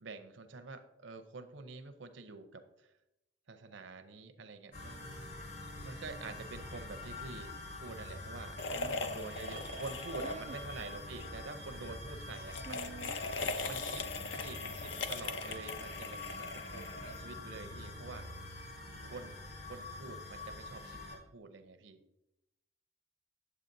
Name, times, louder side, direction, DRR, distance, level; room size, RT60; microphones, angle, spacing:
voice 1, 0.0-2.9 3.5-5.1 5.8-12.9 13.6-18.3 19.0-19.4 19.7-22.0, right 3 dB, 70° right, 10 dB, 0.7 m, -47 dB
sound 1, 4.7-21.2, left 2 dB, 55° left, 2.5 m, -45 dB
sound 2, 8.6-10.8 11.1-11.3 12.4-17.4, left 3 dB, 70° left, 0.6 m, -40 dB
voice 2, 8.8-9.1 10.2-10.6 12.7-13.1, right 4 dB, 35° right, 12 dB, 0.3 m, -48 dB
8.7 x 8.2 x 2.7 m, 0.88 s
head